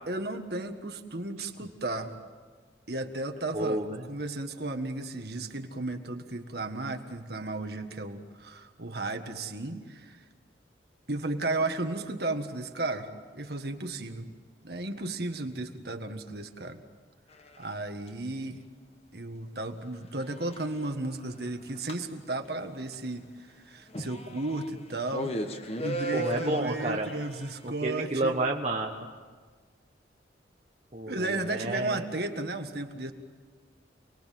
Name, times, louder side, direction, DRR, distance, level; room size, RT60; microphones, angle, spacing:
voice 1, 0.1-2.1 2.9-10.2 11.1-13.1 13.3-14.3 14.6-16.8 17.6-18.6 19.1-25.4 25.8-28.3 31.1-33.1, right 2 dB, 55° right, 6 dB, 1.7 m, -34 dB
voice 2, 3.5-4.0 26.1-27.1 27.6-28.9 30.9-32.0, right 2 dB, 35° right, 1 dB, 1.2 m, -30 dB
sound 1, 17.4-17.6 20.3-20.6 21.3-21.5 21.8-22.0 22.9-23.0 23.3-23.4 23.9-24.7 25.1-27.6, right 1 dB, 35° left, 1.3 m, -34 dB
29.0 x 21.0 x 7.7 m, 1.5 s
head